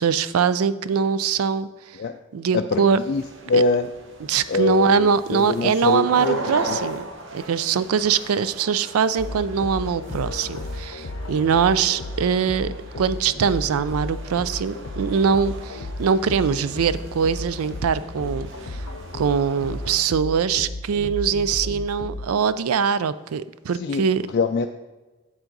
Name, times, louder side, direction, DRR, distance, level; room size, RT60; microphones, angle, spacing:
voice 1, 0.0-1.7 2.3-3.0 3.5-3.6 4.2-7.0 7.3-18.8 19.1-24.3, right 6 dB, 80° right, 15 dB, 0.4 m, -22 dB
sound 1, 2.9-20.0, right 2 dB, 55° right, 0.9 m, -39 dB
voice 2, 3.5-3.9 4.5-5.0 5.3-6.8 23.8-24.0 24.3-24.7, left 3 dB, 50° left, 6 dB, 0.3 m, -23 dB
sound 2, 9.2-22.3, left 2 dB, 80° left, 0.7 m, -34 dB
7.7 x 7.2 x 3.9 m, 1.2 s
head